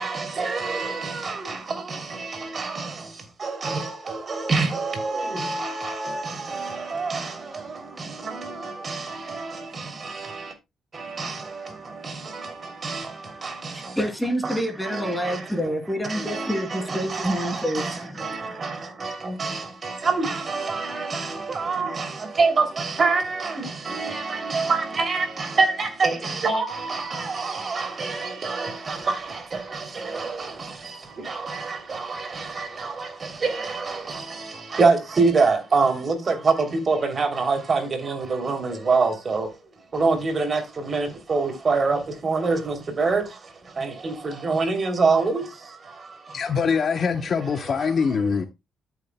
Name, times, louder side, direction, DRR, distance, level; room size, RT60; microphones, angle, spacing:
voice 1, 0.0-2.0 2.5-2.9 3.4-7.3 8.3-8.4 8.8-9.0 9.4-9.5 11.2-11.4 12.0-12.1 12.8-13.0 13.6-13.7 14.4-14.6 14.9-15.4 16.1-18.7 19.0-22.1 22.4-29.4 29.7-30.5 31.3-33.1 33.4-34.2 34.7-36.5 36.9-39.5 39.9-43.2 43.8-45.4, right 4 dB, 40° right, 3.0 m, -25 dB
voice 2, 13.7-18.6 21.5-21.6, equal, 5° left, 2.7 m, -28 dB
voice 3, 46.3-48.5, left 6 dB, 50° left, 0.9 m, -23 dB
13.5 x 7.2 x 2.2 m
cardioid pair, 90°, 0 cm